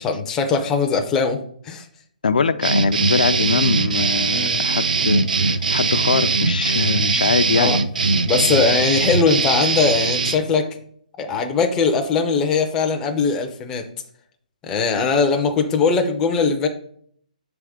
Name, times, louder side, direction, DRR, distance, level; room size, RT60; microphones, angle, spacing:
voice 1, 0.0-1.9 4.3-4.6 7.5-7.8 8.3-10.7 11.2-13.9 14.6-16.7, left 5 dB, 10° left, 4 dB, 0.4 m, -20 dB
voice 2, 2.2-7.7, left 5 dB, 80° left, 12 dB, 0.4 m, -22 dB
sound 1, 2.6-10.4, right 4 dB, 80° right, 0.5 m, -21 dB
5.8 x 3.5 x 4.8 m, 0.62 s
hypercardioid pair, 170°, 4 cm